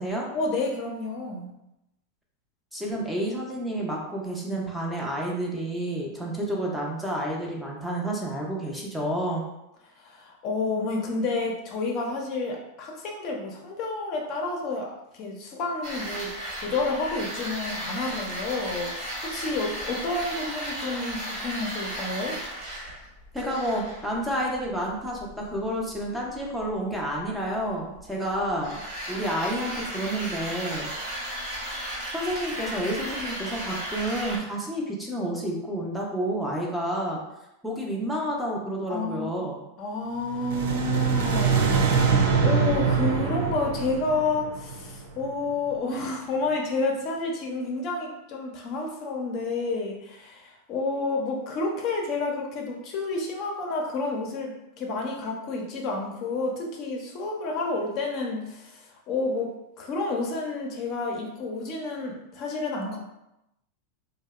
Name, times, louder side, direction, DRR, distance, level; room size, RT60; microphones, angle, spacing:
voice 1, 0.3-1.5 10.0-22.4 38.9-39.3 39.8-42.0 42.4-63.0, left 3 dB, 45° left, 0 dB, 0.5 m, -30 dB
voice 2, 2.7-9.4 23.3-31.2 32.1-37.2 37.6-39.6, right 1 dB, 5° right, -2 dB, 0.5 m, -30 dB
sound 1, 15.8-34.4, right 1 dB, 45° right, 1.0 m, -35 dB
sound 2, 40.3-45.4, right 5 dB, 70° right, 0.4 m, -24 dB
2.7 x 2.0 x 2.3 m, 0.87 s
hypercardioid pair, 115°, 0 cm